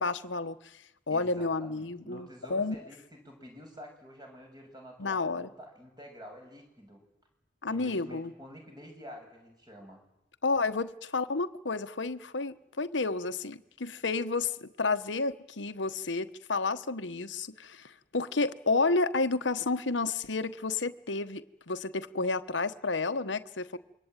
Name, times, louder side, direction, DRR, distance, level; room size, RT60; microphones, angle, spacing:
voice 1, 0.0-2.7 5.0-5.5 7.6-8.3 10.4-23.8, left 3 dB, 80° left, 11 dB, 1.2 m, -31 dB
voice 2, 1.1-7.0 7.7-10.0, equal, 20° right, 2 dB, 6.8 m, -49 dB
27.5 x 23.5 x 9.2 m, 0.86 s
head